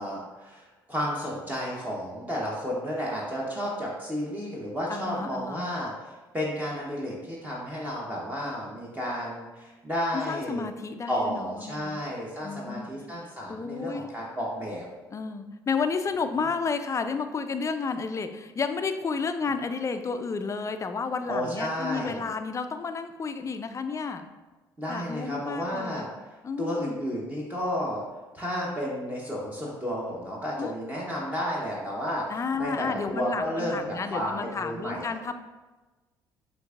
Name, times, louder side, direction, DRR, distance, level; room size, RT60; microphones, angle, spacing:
voice 1, 0.0-10.7 11.1-14.9 21.3-22.3 24.8-26.1 26.6-28.0 28.3-32.2 32.6-35.1, equal, 15° right, -4 dB, 0.9 m, -32 dB
voice 2, 4.9-5.7 10.1-12.0 12.4-12.9 13.5-14.1 15.1-24.2 24.9-26.1 26.4-27.0 30.6-30.7 32.3-35.3, left 5 dB, 30° left, 9 dB, 0.4 m, -31 dB
6.2 x 2.6 x 2.4 m, 1.2 s
hypercardioid pair, 55°, 11 cm